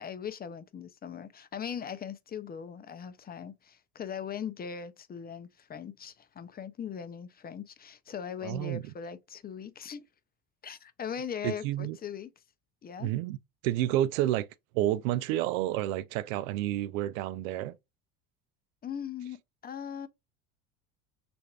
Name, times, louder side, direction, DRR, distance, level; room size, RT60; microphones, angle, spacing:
voice 1, 0.0-10.0 10.6-12.3 12.8-13.1 18.8-20.1, left 7 dB, 25° left, 0.5 m, -40 dB
voice 2, 8.4-8.8 11.4-12.0 13.0-13.4 13.6-14.5 14.7-17.8, right 13 dB, 90° right, 0.5 m, -30 dB
6.4 x 2.6 x 2.3 m
supercardioid pair, 100°, 39 cm